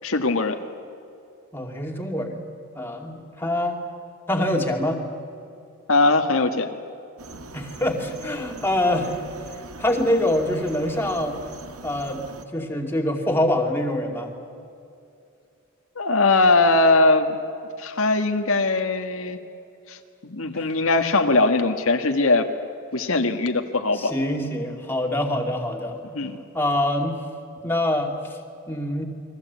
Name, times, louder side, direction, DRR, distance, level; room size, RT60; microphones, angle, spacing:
voice 1, 0.0-0.6 5.9-6.7 15.9-17.3 17.8-19.4 19.9-20.0 20.2-22.5 22.9-24.1 26.1-26.4, left 2 dB, 70° left, 5 dB, 1.7 m, -20 dB
voice 2, 1.5-2.5 2.7-3.8 4.3-5.0 7.5-9.2 9.8-11.4 11.8-12.3 12.5-14.4 20.5-20.7 23.9-26.0 26.5-27.2 27.6-28.2 28.7-29.1, left 1 dB, 10° left, 1 dB, 2.6 m, -25 dB
sound 1, 7.2-12.4, right 2 dB, 85° right, 1.8 m, -41 dB
29.5 x 22.5 x 8.4 m, 2.6 s
head